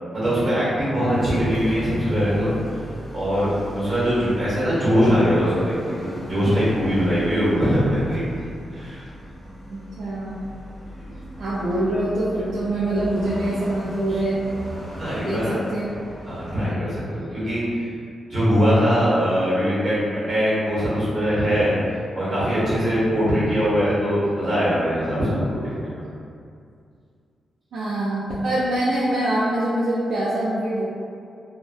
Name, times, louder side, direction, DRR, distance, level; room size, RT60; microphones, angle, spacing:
voice 1, 0.0-2.5 3.1-8.3 8.7-9.0 10.9-11.0 14.1-14.2 15.0-15.6 16.3-17.6 18.3-19.9 20.3-21.7 22.1-26.0, equal, 45° right, -9 dB, 1.1 m, -21 dB
sound 1, 1.2-16.7, equal, 10° right, 1.3 m, -38 dB
voice 2, 9.7-10.4 11.4-14.4 15.1-15.8 27.7-30.8, right 1 dB, 75° right, -8 dB, 0.3 m, -24 dB
2.6 x 2.1 x 2.4 m, 2.4 s
cardioid pair, 85°, 0 cm